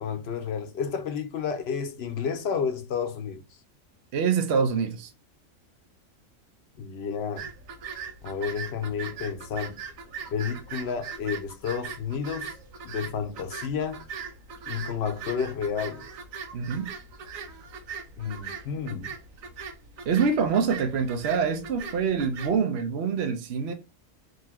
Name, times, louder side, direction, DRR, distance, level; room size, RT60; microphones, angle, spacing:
voice 1, 0.0-3.4 6.8-7.5 8.2-9.8 10.3-12.5 12.8-14.0 14.7-16.1 18.2-19.1, left 6 dB, 60° left, 0.8 m, -31 dB
voice 2, 4.1-5.1 16.5-16.9 20.1-23.7, right 6 dB, 60° right, 0.9 m, -25 dB
sound 1, 7.4-22.5, right 6 dB, 85° right, 1.2 m, -40 dB
4.0 x 2.6 x 4.3 m
omnidirectional pair, 1.4 m